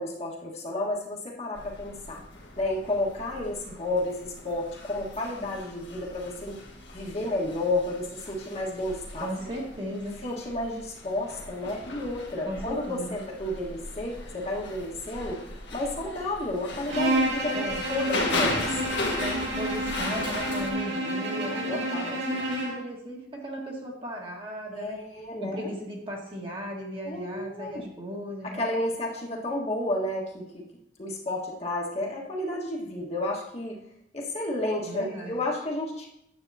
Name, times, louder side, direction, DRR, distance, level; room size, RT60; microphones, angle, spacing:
voice 1, 0.0-2.2 2.6-6.6 6.9-9.3 10.2-15.4 15.7-17.5 17.9-18.9 21.7-22.4 24.7-25.7 27.1-27.9 28.4-30.7 31.0-33.8 34.1-36.1, left 1 dB, 35° left, -3 dB, 1.5 m, -31 dB
sound 1, 1.5-20.7, left 2 dB, 70° left, 1.7 m, -37 dB
voice 2, 9.2-10.2 12.5-13.1 17.5-17.8 19.2-25.0 25.4-28.6 34.8-35.4, equal, 25° right, -1 dB, 1.5 m, -36 dB
Bowed string instrument, 16.9-22.9, right 1 dB, 80° right, 1.9 m, -30 dB
9.8 x 7.8 x 2.8 m, 0.76 s
head